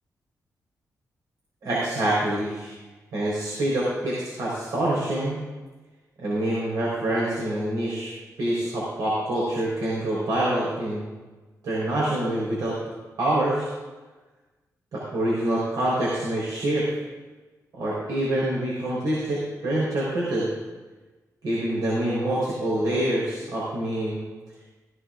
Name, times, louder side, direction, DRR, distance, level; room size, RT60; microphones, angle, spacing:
voice 1, 1.6-2.7 3.1-5.4 6.2-8.1 8.4-11.0 11.6-12.8 13.2-13.7 14.9-16.8 17.7-20.5 21.4-24.2, right 1 dB, 90° right, -7 dB, 4.2 m, -26 dB
17.0 x 14.5 x 2.5 m, 1.2 s
wide cardioid pair, 165°, 7 cm